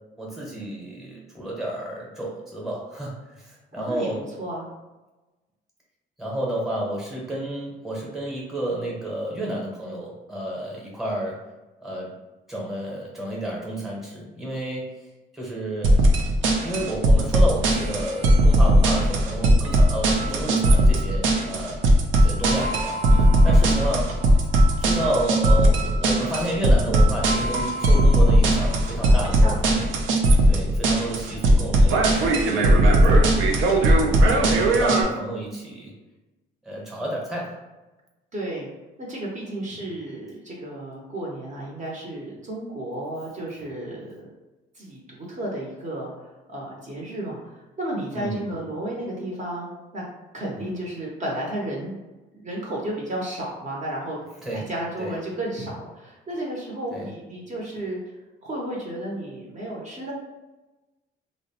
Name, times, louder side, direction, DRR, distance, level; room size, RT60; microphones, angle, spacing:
voice 1, 0.2-4.2 6.2-11.4 11.8-12.1 12.5-14.9 15.3-16.0 16.6-21.8 22.2-23.0 23.4-24.2 24.8-29.8 30.5-32.7 33.7-35.9 36.6-37.6 39.7-39.8 48.1-48.6 50.5-50.7 54.4-54.7 55.0-55.2 56.9-57.0, right 1 dB, ahead, -3 dB, 0.8 m, -31 dB
voice 2, 3.8-4.1 4.4-4.7 23.1-23.3 29.1-29.6 38.3-38.7 39.0-44.3 44.7-45.0 45.3-50.0 50.3-51.9 52.4-54.2 54.5-58.0 58.4-60.1, right 1 dB, 40° right, -3 dB, 0.7 m, -33 dB
sound 1, 15.8-35.0, right 1 dB, 80° right, 0.4 m, -18 dB
2.5 x 2.0 x 2.7 m, 1.1 s
cardioid pair, 90°, 20 cm